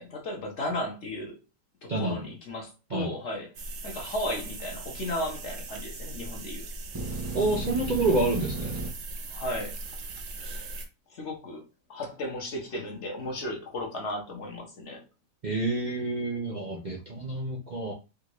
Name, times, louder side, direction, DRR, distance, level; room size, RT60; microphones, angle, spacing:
voice 1, 0.0-1.4 1.8-3.5 3.8-6.7 9.3-10.0 11.1-11.6 11.9-15.0, left 1 dB, 50° left, 1.0 m, -35 dB
voice 2, 1.9-2.2 2.9-3.1 7.3-8.8 15.4-17.9, right 2 dB, 90° right, 0.4 m, -28 dB
sound 1, 3.5-10.9, right 2 dB, 65° right, 0.9 m, -39 dB
sound 2, 6.9-8.9, right 3 dB, 20° right, 0.5 m, -34 dB
3.6 x 2.4 x 3.0 m
omnidirectional pair, 1.8 m